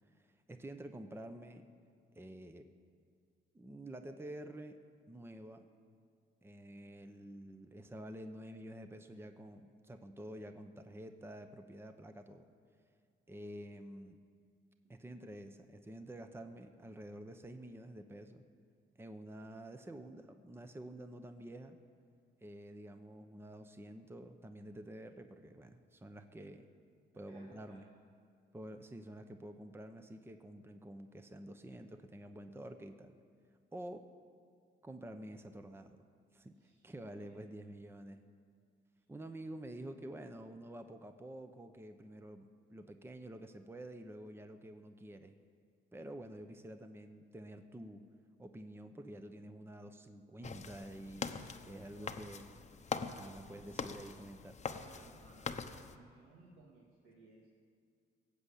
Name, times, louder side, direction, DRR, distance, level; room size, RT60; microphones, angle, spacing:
voice 1, 0.1-1.6 2.1-2.7 3.5-4.8 5.1-5.7 6.4-12.4 13.3-14.2 14.9-18.4 19.0-21.8 22.4-26.7 27.1-27.9 28.5-33.2 33.7-34.1 34.8-36.1 36.3-38.2 39.1-45.3 45.9-48.0 48.4-52.5 53.0-54.6, right 1 dB, 10° right, 7 dB, 0.8 m, -49 dB
voice 2, 27.3-27.8 36.6-37.4 51.9-52.3 54.7-57.5, right 3 dB, 90° right, -4 dB, 2.3 m, -61 dB
sound 1, 50.4-55.9, left 5 dB, 35° left, 0.9 m, -43 dB
18.5 x 7.8 x 8.5 m, 2.2 s
cardioid pair, 90°, 20 cm